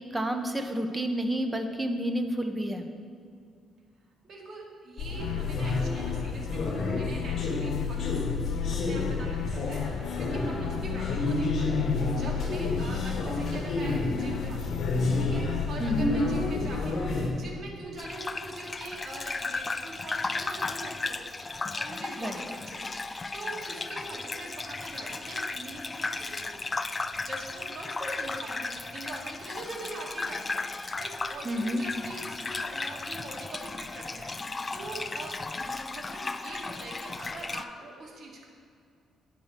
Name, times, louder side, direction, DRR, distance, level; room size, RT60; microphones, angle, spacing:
voice 1, 0.1-2.8 15.8-16.1 22.2-22.4 31.4-31.8, equal, 15° right, 5 dB, 1.0 m, -29 dB
voice 2, 4.2-8.0 8.8-17.0 17.3-26.8 27.2-38.5, right 2 dB, 55° right, -2 dB, 2.3 m, -43 dB
sound 1, 5.0-17.3, left 3 dB, 55° left, 1.8 m, -29 dB
sound 2, 5.2-16.5, left 9 dB, 90° left, 0.4 m, -37 dB
Gurgling / Bathtub (filling or washing), 18.0-37.6, left 3 dB, 25° left, 0.4 m, -35 dB
9.5 x 8.6 x 4.5 m, 2.3 s
cardioid pair, 90°, 0 cm